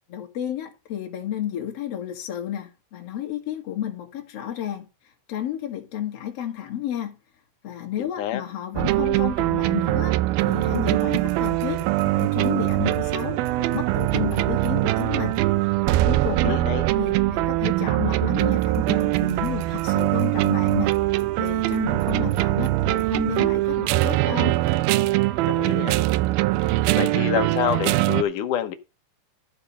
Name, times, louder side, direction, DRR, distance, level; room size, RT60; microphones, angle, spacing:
voice 1, 0.1-4.9 5.3-7.2 7.6-15.4 16.0-16.6 17.0-20.9 21.4-24.6, left 10 dB, 45° left, 2.8 m, -31 dB
voice 2, 8.0-8.4 16.4-16.9 25.5-26.0 27.0-28.8, left 10 dB, 65° left, 2.3 m, -27 dB
sound 1, 8.8-28.2, right 17 dB, 80° right, 2.3 m, -22 dB
13.5 x 4.8 x 5.5 m
omnidirectional pair, 4.4 m